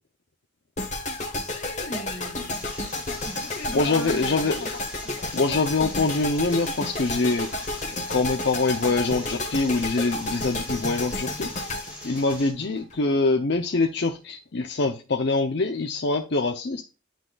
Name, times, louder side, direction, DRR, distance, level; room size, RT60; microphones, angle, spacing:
sound 1, 0.8-12.9, left 2 dB, 35° left, 1.5 m, -32 dB
voice 1, 1.3-2.6 3.2-4.7 5.0-5.3 10.6-10.9 12.5-12.7, left 1 dB, 85° left, 2.0 m, -39 dB
sound 2, 2.5-12.5, left 1 dB, 5° right, 1.4 m, -43 dB
voice 2, 3.7-4.6 5.3-7.5 8.1-11.5 12.0-16.8, left 3 dB, 55° left, 0.6 m, -24 dB
10.0 x 3.9 x 2.4 m
head